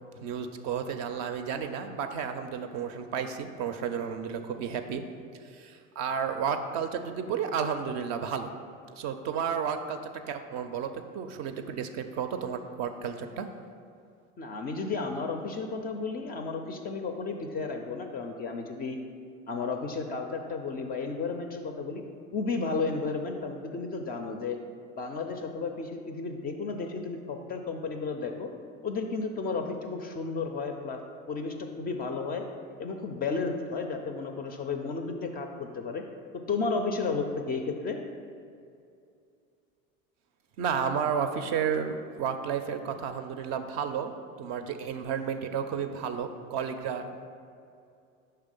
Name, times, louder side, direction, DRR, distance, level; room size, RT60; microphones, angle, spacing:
voice 1, 0.2-5.1 5.4-8.5 8.9-13.5 40.6-47.3, right 7 dB, 45° right, 8 dB, 0.4 m, -32 dB
voice 2, 14.4-19.0 19.5-22.1 22.3-24.6 25.0-28.5 28.8-31.0 31.3-32.4 32.8-36.0 36.5-38.0, left 4 dB, 25° left, 4 dB, 0.3 m, -33 dB
5.7 x 3.3 x 5.2 m, 2.5 s
hypercardioid pair, 75°, 40 cm